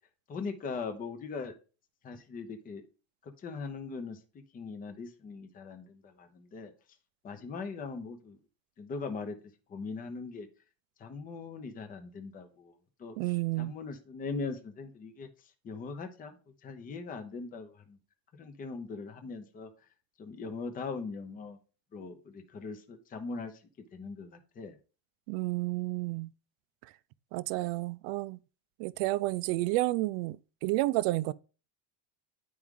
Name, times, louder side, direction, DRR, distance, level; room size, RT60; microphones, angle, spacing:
voice 1, 0.3-1.5 2.0-2.8 3.2-4.2 4.5-6.7 7.2-8.4 8.8-9.4 9.7-10.5 11.0-12.7 13.0-13.2 13.6-15.3 15.6-16.4 16.6-18.0 18.4-19.7 20.2-21.6 21.9-23.5 23.9-24.8, left 4 dB, 20° left, 0.6 m, -40 dB
voice 2, 13.2-13.7 25.3-26.3 27.3-28.4 28.8-31.3, right 18 dB, 80° right, 0.6 m, -30 dB
9.4 x 4.8 x 3.6 m
cardioid pair, 170°, 49 cm